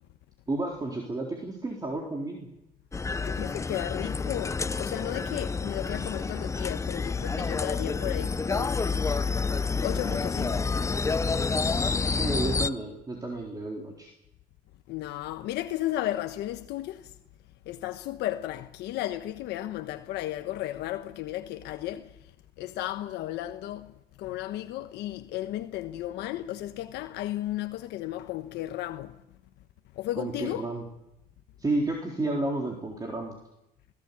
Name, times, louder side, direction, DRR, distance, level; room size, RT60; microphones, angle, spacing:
voice 1, 0.5-2.5 12.2-14.1 30.2-30.8 31.6-33.3, right 2 dB, 20° right, 3.9 m, -31 dB
sound 1, 2.9-12.7, left 4 dB, 15° left, 0.7 m, -29 dB
voice 2, 3.2-9.1 9.8-10.7 14.9-17.1 17.7-22.2 22.6-29.2 29.9-30.6, left 14 dB, 85° left, 1.2 m, -34 dB
21.5 x 16.5 x 8.4 m
cardioid pair, 110°, 17 cm